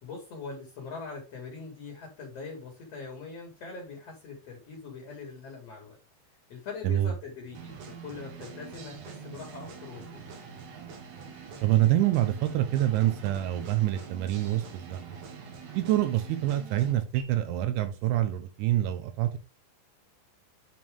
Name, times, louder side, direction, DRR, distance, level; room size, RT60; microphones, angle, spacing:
voice 1, 0.0-6.0 6.5-10.2, left 4 dB, 45° left, 0 dB, 2.2 m, -42 dB
sound 1, 7.5-17.2, right 6 dB, 70° right, 3.6 m, -45 dB
voice 2, 11.6-15.2 15.7-19.4, right 13 dB, 85° right, 10 dB, 3.3 m, -26 dB
9.0 x 4.4 x 3.6 m, 0.31 s
omnidirectional pair, 5.3 m